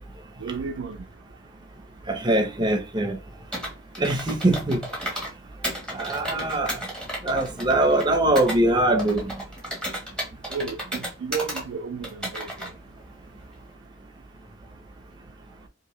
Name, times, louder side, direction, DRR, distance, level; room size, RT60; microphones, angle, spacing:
voice 1, 0.4-1.0 10.5-12.7, right 5 dB, 80° right, 0.3 m, -33 dB
voice 2, 2.1-3.2 4.0-4.8 5.9-6.8 7.2-9.3, right 1 dB, 25° right, 0.6 m, -22 dB
Computer keyboard, 3.5-5.3 5.6-8.6 9.0-11.6 12.0-12.7, equal, 5° left, 1.0 m, -33 dB
2.9 x 2.5 x 3.0 m
head